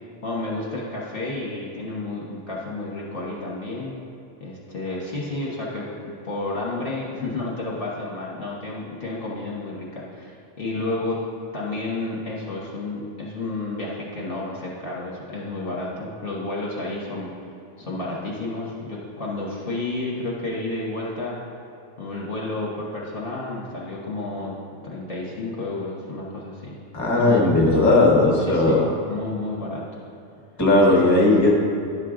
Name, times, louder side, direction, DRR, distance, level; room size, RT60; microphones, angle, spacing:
voice 1, 0.2-3.9 4.4-11.2 11.5-17.3 17.8-21.4 22.0-24.5 24.8-26.8 27.2-27.8 28.5-28.8 29.1-30.0 30.9-31.0, left 2 dB, 45° left, -5 dB, 1.3 m, -31 dB
voice 2, 26.9-28.8 30.6-31.6, left 2 dB, 15° left, -2 dB, 1.3 m, -17 dB
10.5 x 6.6 x 3.8 m, 2.6 s
omnidirectional pair, 1.3 m